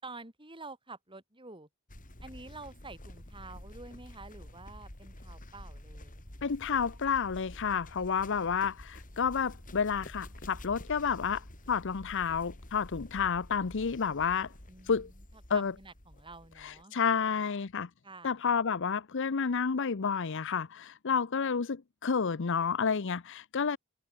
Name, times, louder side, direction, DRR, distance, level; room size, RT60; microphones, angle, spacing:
voice 1, 0.0-1.7 2.2-6.3 14.7-17.0 18.0-18.3, right 3 dB, 25° right, 7.4 m, -49 dB
sound 1, 1.9-16.8, left 1 dB, 40° left, 3.5 m, -49 dB
voice 2, 6.4-14.5 14.8-15.1 15.5-15.7 16.6-17.9 18.2-23.8, left 6 dB, 60° left, 0.7 m, -30 dB
head